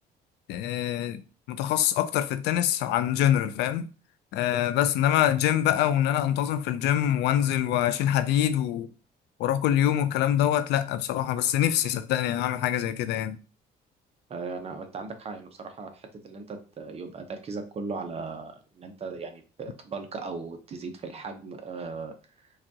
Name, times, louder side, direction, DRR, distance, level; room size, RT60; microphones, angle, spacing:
voice 1, 0.5-1.2 1.5-3.9 4.3-8.9 9.4-13.4, left 11 dB, 85° left, 0.4 m, -25 dB
voice 2, 14.3-22.1, right 4 dB, 35° right, 0.7 m, -37 dB
4.8 x 2.4 x 2.8 m
cardioid pair, 110°, 17 cm